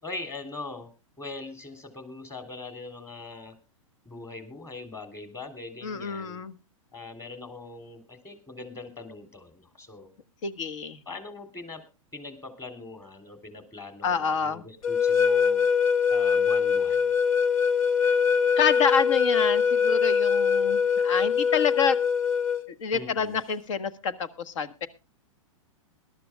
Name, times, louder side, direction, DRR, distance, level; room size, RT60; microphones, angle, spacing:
voice 1, 0.0-0.9 1.2-3.5 4.0-6.4 6.9-10.1 11.0-11.8 12.1-15.7 16.1-17.1 22.9-23.4, left 3 dB, 15° left, 8 dB, 3.4 m, -41 dB
voice 2, 5.8-6.5 10.4-11.0 14.0-14.6 18.6-22.0 22.8-24.9, left 6 dB, 65° left, 15 dB, 1.5 m, -27 dB
sound 1, 14.8-22.6, left 6 dB, 80° left, 1.5 m, -23 dB
21.5 x 12.5 x 2.3 m, 0.29 s
hypercardioid pair, 115°, 17 cm